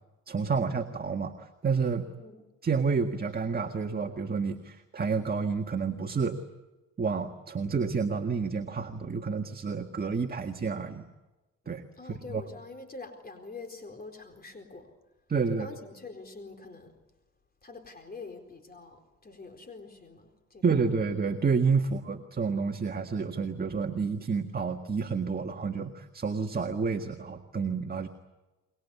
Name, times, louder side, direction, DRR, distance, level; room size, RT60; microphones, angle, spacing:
voice 1, 0.3-2.0 2.6-6.4 7.0-11.0 11.7-11.8 12.3-12.4 15.3-15.7 20.6-28.1, right 5 dB, 30° right, 5 dB, 1.7 m, -29 dB
voice 2, 12.0-14.9 15.5-17.0 17.6-20.9 21.8-21.9, left 3 dB, 30° left, 5 dB, 4.2 m, -45 dB
24.5 x 22.5 x 8.2 m, 1.1 s
cardioid pair, 90°, 30 cm